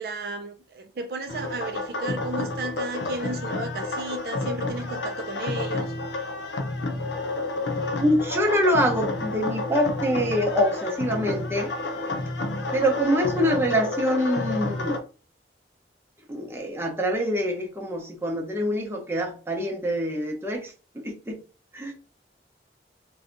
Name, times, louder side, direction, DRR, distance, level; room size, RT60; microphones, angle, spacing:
voice 1, 0.0-5.9, right 3 dB, 60° right, 0.4 m, -34 dB
sound 1, 1.3-15.0, left 2 dB, 90° left, 0.6 m, -30 dB
voice 2, 8.0-11.7 12.7-15.0 16.3-21.4 21.7-21.9, equal, 15° right, 0.7 m, -25 dB
2.7 x 2.3 x 3.8 m
head